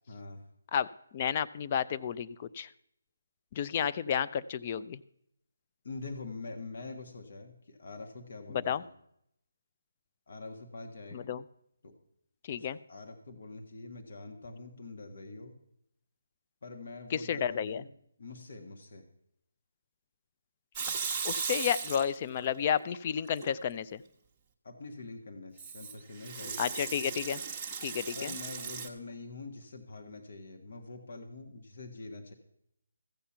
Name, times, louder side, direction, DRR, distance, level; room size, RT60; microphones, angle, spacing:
voice 1, 0.1-0.5 5.8-8.9 10.3-11.3 11.8-12.0 12.5-15.6 16.6-17.9 18.2-19.1 24.6-26.8 28.1-32.3, left 3 dB, 55° left, 4 dB, 1.5 m, -45 dB
voice 2, 1.1-2.7 3.5-5.0 8.5-8.8 11.1-11.4 12.4-12.8 17.1-17.8 21.2-24.0 26.6-27.4 27.8-28.3, left 8 dB, 30° left, 13 dB, 0.4 m, -31 dB
Water tap faucet / Sink (filling or washing) / Liquid, 20.8-22.5 22.8-23.5 25.6-28.9, right 6 dB, 15° right, 1.0 m, -37 dB
14.5 x 7.2 x 5.7 m, 0.75 s
figure-of-eight pair, 160°, 0 cm